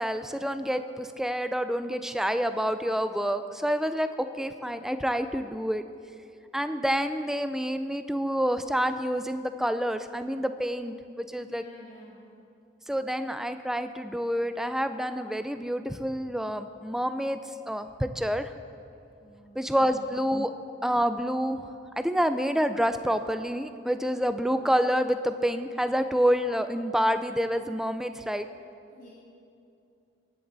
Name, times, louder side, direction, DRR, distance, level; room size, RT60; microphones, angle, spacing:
voice 1, 0.0-5.8 6.5-11.6 12.9-17.4 17.7-18.5 19.6-20.5 20.8-21.7 22.0-28.5, equal, ahead, 9 dB, 0.5 m, -28 dB
voice 2, 11.4-12.2 19.2-20.2 28.9-29.1, equal, 40° left, -7 dB, 2.2 m, -50 dB
24.0 x 10.0 x 4.1 m, 2.6 s
head